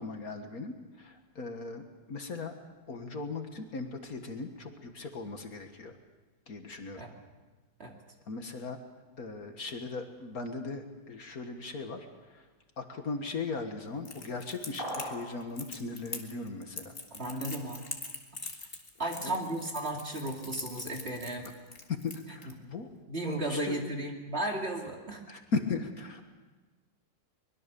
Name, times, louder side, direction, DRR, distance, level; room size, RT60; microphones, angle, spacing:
voice 1, 0.0-2.6 2.9-5.9 6.5-7.0 8.3-8.8 9.2-12.5 12.8-16.9 19.2-19.4 21.9-22.9 23.2-23.8 25.3-26.2, left 3 dB, 55° left, 6 dB, 1.9 m, -38 dB
Crackle, 14.0-22.5, left 3 dB, 30° left, 2.2 m, -43 dB
sound 1, 14.8-15.4, equal, 20° right, 4.0 m, -37 dB
voice 2, 17.1-17.8 19.0-21.4 23.1-25.2, right 1 dB, 35° right, 1 dB, 2.8 m, -34 dB
24.0 x 21.5 x 6.9 m, 1.3 s
omnidirectional pair, 1.9 m